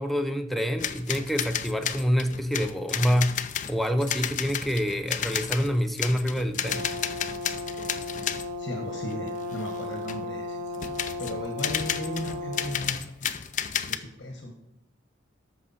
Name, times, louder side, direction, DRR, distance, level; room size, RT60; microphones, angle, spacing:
voice 1, 0.0-3.4 3.7-6.8, equal, ahead, 0.7 m, -26 dB
sound 1, 0.8-8.6 9.1-10.2 10.7-14.0, left 9 dB, 40° left, 0.5 m, -32 dB
Brass instrument, 6.6-12.9, left 2 dB, 55° right, 1.2 m, -35 dB
voice 2, 8.6-13.3 13.9-14.5, left 1 dB, 60° left, 1.3 m, -36 dB
13.0 x 6.3 x 4.2 m
head